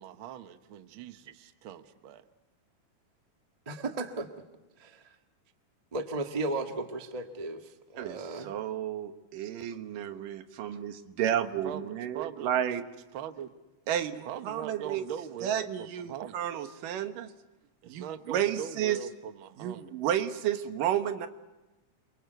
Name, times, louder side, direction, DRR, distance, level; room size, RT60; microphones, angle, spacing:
voice 1, 0.0-2.2 11.2-11.3 11.6-12.6 13.1-13.5 14.2-16.4 17.8-19.9, right 10 dB, 60° right, 9 dB, 1.4 m, -41 dB
voice 2, 3.7-4.3 4.8-5.0 5.9-8.5, right 2 dB, 25° right, 5 dB, 0.7 m, -35 dB
voice 3, 8.0-12.8 13.9-15.0 15.4-17.3 17.9-19.1 19.6-21.3, right 10 dB, 85° right, 9 dB, 2.9 m, -32 dB
28.5 x 23.5 x 8.0 m, 1.1 s
omnidirectional pair, 3.7 m